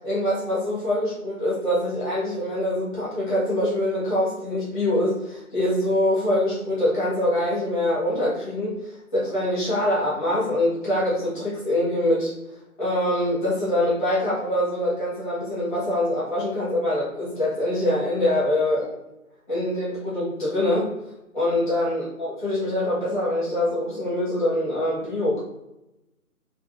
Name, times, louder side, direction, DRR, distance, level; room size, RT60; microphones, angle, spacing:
voice 1, 0.0-12.3 12.8-18.9 19.5-20.9 21.3-25.4, left 1 dB, 5° left, -9 dB, 0.9 m, -24 dB
3.3 x 2.4 x 2.5 m, 0.93 s
figure-of-eight pair, 165°, 44 cm